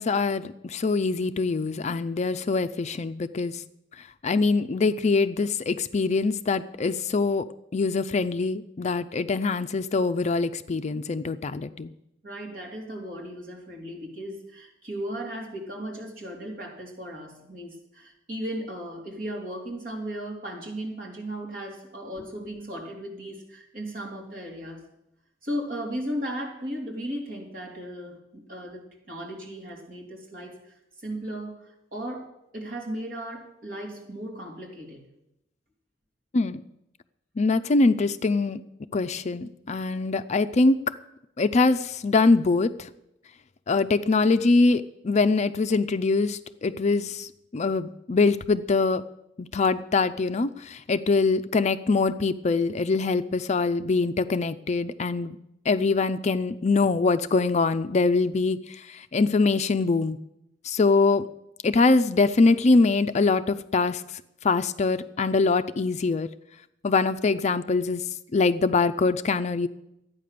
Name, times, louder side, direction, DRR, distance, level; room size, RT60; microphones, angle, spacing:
voice 1, 0.0-3.6 4.2-7.4 7.7-11.9 36.3-36.6 37.4-38.6 38.9-40.8 41.4-42.9 43.7-49.0 49.4-55.4 55.7-60.2 60.6-61.3 61.6-64.0 64.4-66.3 66.8-68.0 68.3-69.7, left 3 dB, 40° left, 12 dB, 0.4 m, -23 dB
voice 2, 12.2-24.8 25.4-28.8 29.1-32.3 32.5-35.0, equal, 50° right, -1 dB, 3.3 m, -36 dB
12.5 x 9.3 x 6.7 m, 0.83 s
head